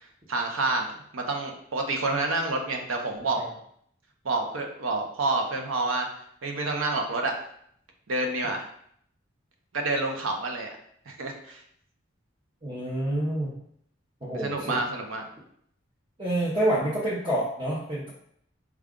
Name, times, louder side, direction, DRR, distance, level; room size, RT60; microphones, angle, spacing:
voice 1, 0.3-3.4 4.2-6.1 6.4-7.3 8.1-8.6 9.7-10.7 11.1-11.6 14.3-15.3, right 2 dB, 80° right, 3 dB, 0.7 m, -28 dB
voice 2, 12.6-13.5 14.2-14.8 16.2-18.1, right 1 dB, 25° right, -8 dB, 0.7 m, -28 dB
4.8 x 2.3 x 3.7 m, 0.68 s
head